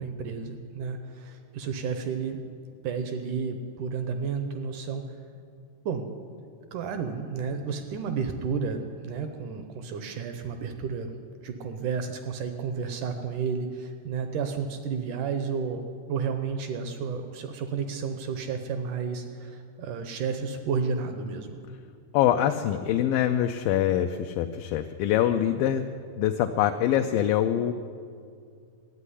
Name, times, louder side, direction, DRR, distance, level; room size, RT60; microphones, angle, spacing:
voice 1, 0.0-2.4 2.8-5.0 5.9-6.1 6.7-11.1 11.4-15.8 16.1-21.6, right 5 dB, 75° right, 7 dB, 1.9 m, -31 dB
voice 2, 22.1-25.9 26.2-27.7, left 11 dB, 80° left, 6 dB, 2.1 m, -24 dB
13.5 x 8.3 x 9.8 m, 2.2 s
omnidirectional pair, 4.4 m